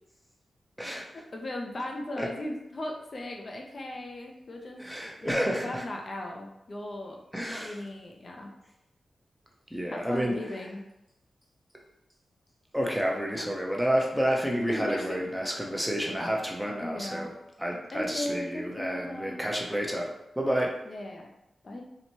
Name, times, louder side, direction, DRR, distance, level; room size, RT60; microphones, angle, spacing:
voice 1, 1.1-4.8 5.2-8.6 9.9-10.9 14.7-15.2 16.8-17.3 17.9-19.4 20.8-21.3 21.6-21.8, left 1 dB, 50° left, 1 dB, 0.4 m, -37 dB
voice 2, 4.8-5.8 7.3-7.8 9.7-10.4 12.7-17.3 17.6-20.1 20.4-20.7, equal, 5° right, -1 dB, 0.6 m, -29 dB
2.8 x 2.1 x 2.9 m, 0.88 s
cardioid pair, 50°, 0 cm